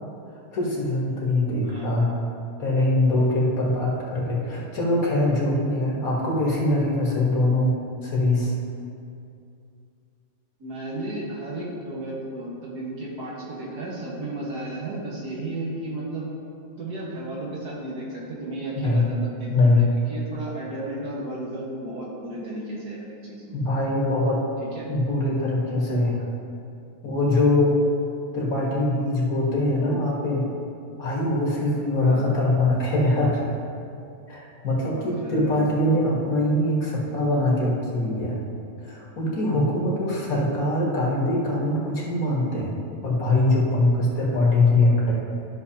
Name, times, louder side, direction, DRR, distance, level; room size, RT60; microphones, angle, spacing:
voice 1, 0.5-2.1 2.6-7.7 8.0-8.5 18.8-19.1 19.5-19.8 23.5-24.4 24.9-26.2 27.0-27.8 28.3-30.4 31.0-33.4 34.3-38.4 38.8-42.7 43.0-45.1, left 2 dB, 65° left, -4 dB, 2.0 m, -22 dB
voice 2, 10.6-16.3 16.8-23.6 24.6-24.9 32.0-32.3 34.8-35.6, right 1 dB, 90° right, -5 dB, 2.2 m, -34 dB
12.5 x 6.1 x 2.9 m, 2.5 s
omnidirectional pair, 1.7 m